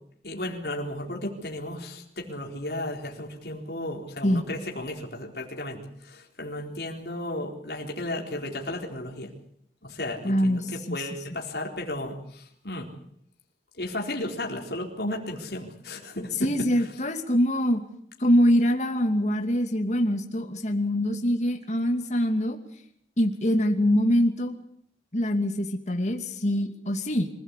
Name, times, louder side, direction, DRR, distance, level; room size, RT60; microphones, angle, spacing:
voice 1, 0.2-9.3 9.8-12.9 13.8-16.9, left 1 dB, 65° left, 0 dB, 4.1 m, -34 dB
voice 2, 10.2-11.0 16.4-17.8 18.2-22.6 23.2-24.5 25.1-27.3, equal, 40° left, 5 dB, 2.7 m, -24 dB
25.5 x 17.0 x 8.4 m, 0.69 s
head